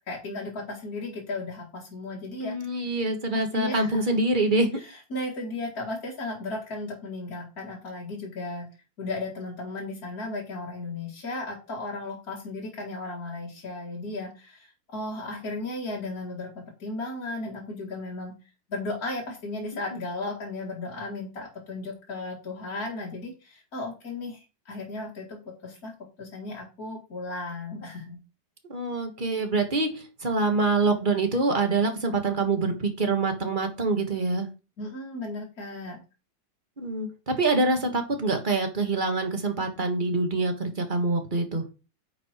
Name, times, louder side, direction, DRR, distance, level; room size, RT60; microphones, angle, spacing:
voice 1, 0.1-2.6 3.3-4.1 4.9-8.7 9.0-18.3 18.7-25.4 25.6-25.9 26.2-28.2 34.8-36.0, left 2 dB, 50° left, -3 dB, 2.5 m, -35 dB
voice 2, 2.4-4.7 28.7-34.5 36.8-41.6, right 3 dB, 30° right, 4 dB, 1.6 m, -25 dB
9.4 x 5.2 x 4.4 m, 0.32 s
omnidirectional pair, 2.0 m